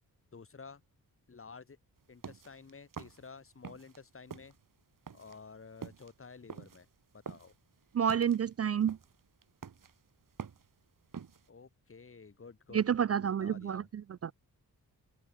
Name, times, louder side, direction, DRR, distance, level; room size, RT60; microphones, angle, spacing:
voice 1, 0.3-0.8 1.3-1.8 2.1-4.5 5.1-6.9 7.1-7.5 11.5-12.9 13.2-13.9, left 5 dB, 35° left, 2.2 m, -51 dB
sound 1, 2.0-4.0 4.3-11.5, right 7 dB, 60° right, 3.5 m, -47 dB
voice 2, 7.9-9.0 12.7-14.3, right 8 dB, 45° right, 0.4 m, -29 dB
open air
wide cardioid pair, 130°, 36 cm